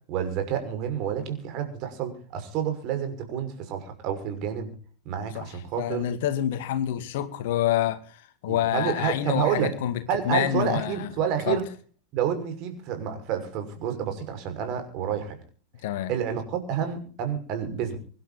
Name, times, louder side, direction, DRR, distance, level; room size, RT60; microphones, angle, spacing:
voice 1, 0.1-4.7 5.0-6.1 8.5-9.7 10.1-11.6 12.1-15.4 16.1-18.0, right 8 dB, 40° right, 6.0 m, -29 dB
voice 2, 5.3-11.1 11.5-11.6 15.8-16.1, left 11 dB, 50° left, 2.1 m, -27 dB
24.5 x 12.0 x 4.2 m
figure-of-eight pair, 90°, 0 cm